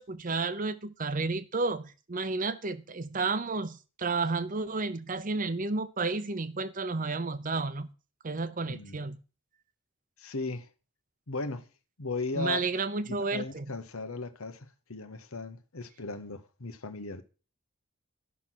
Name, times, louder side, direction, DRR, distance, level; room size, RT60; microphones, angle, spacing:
voice 1, 0.0-7.9 8.2-9.2 12.3-13.7, right 3 dB, 40° right, 0.8 m, -31 dB
voice 2, 8.7-9.0 10.2-10.7 11.3-11.7 12.0-12.6 13.0-17.2, left 3 dB, 85° left, 1.3 m, -37 dB
12.5 x 6.0 x 6.3 m
head